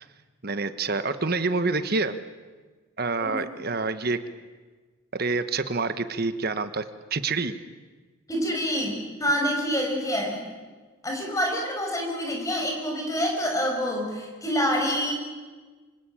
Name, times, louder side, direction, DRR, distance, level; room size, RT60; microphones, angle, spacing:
voice 1, 0.4-2.2 3.0-4.2 5.1-6.8 7.1-7.5, right 3 dB, 45° right, 11 dB, 1.2 m, -27 dB
voice 2, 8.3-10.5 11.0-15.1, equal, 15° left, 1 dB, 5.6 m, -27 dB
25.5 x 25.5 x 8.7 m, 1.4 s
head